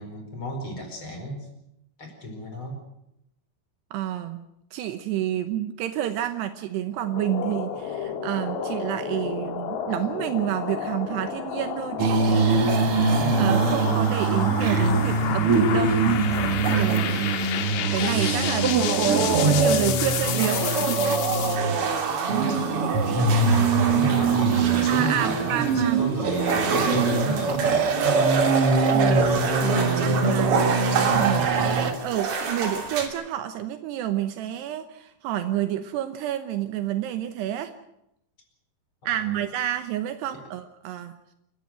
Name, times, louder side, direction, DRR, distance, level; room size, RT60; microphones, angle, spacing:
voice 1, 0.0-1.5 2.0-2.8 22.3-27.9 30.0-31.9 39.0-39.4 40.3-40.4, equal, 30° left, 3 dB, 5.3 m, -33 dB
voice 2, 3.9-4.5 4.7-17.2 17.8-21.2 24.9-26.0 28.9-37.7 39.0-41.2, right 12 dB, 80° right, 9 dB, 3.0 m, -30 dB
sound 1, 7.0-21.6, left 8 dB, 85° left, 3.7 m, -31 dB
sound 2, 12.0-31.9, right 4 dB, 45° right, 2.0 m, -22 dB
sound 3, 20.2-33.1, right 5 dB, 60° right, 4.6 m, -32 dB
29.0 x 13.0 x 7.8 m, 0.82 s
omnidirectional pair, 4.8 m